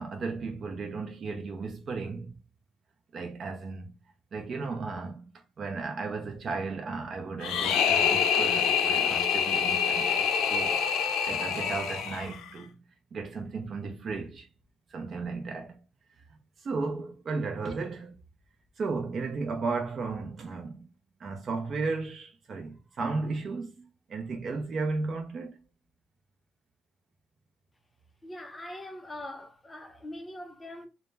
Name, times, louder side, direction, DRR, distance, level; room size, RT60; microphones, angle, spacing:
voice 1, 0.0-2.4 3.1-3.9 4.3-5.3 5.6-10.9 11.3-12.7 13.1-14.5 14.9-15.8 16.6-18.1 18.8-20.9 21.2-25.6, right 4 dB, 50° right, 0.5 m, -34 dB
sound 1, 7.4-12.5, left 7 dB, 90° left, 0.3 m, -26 dB
voice 2, 28.2-30.9, left 1 dB, 20° left, 0.6 m, -42 dB
2.1 x 2.0 x 3.3 m
cardioid pair, 90°, 0 cm